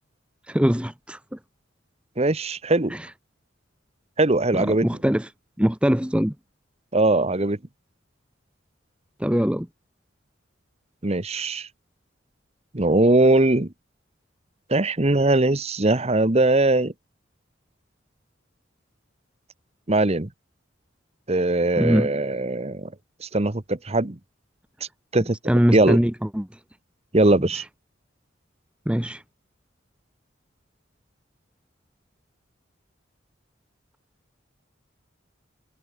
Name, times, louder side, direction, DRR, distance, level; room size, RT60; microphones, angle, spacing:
voice 1, 0.5-1.4 2.9-3.1 4.5-5.3 5.6-6.3 9.2-9.7 21.8-22.1 25.5-26.5 27.5-27.7 28.9-29.2, equal, 5° right, 1.2 m, -22 dB
voice 2, 2.2-2.9 4.2-4.9 6.9-7.6 11.0-11.7 12.7-13.7 14.7-16.9 19.9-20.3 21.3-22.9 23.2-24.2 25.1-25.4 25.7-26.0 27.1-27.6, right 2 dB, 35° right, 1.3 m, -20 dB
head